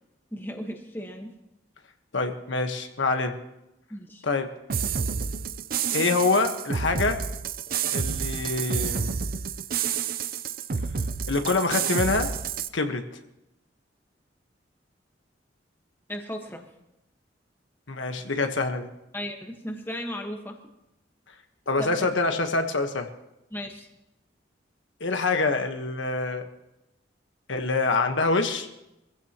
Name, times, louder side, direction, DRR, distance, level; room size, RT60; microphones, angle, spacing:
voice 1, 0.3-1.3 3.9-4.2 16.1-16.7 19.1-20.6 21.8-22.1 23.5-23.9, equal, 10° left, 2 dB, 1.4 m, -35 dB
voice 2, 2.1-3.4 4.2-4.5 5.9-7.2 7.9-9.2 11.3-12.3 12.7-13.1 17.9-18.9 21.7-23.1 25.0-26.5 27.5-28.7, left 3 dB, 80° left, 6 dB, 1.3 m, -25 dB
sound 1, 4.7-12.7, right 6 dB, 50° right, 0.6 m, -29 dB
24.0 x 15.5 x 3.0 m, 0.90 s
head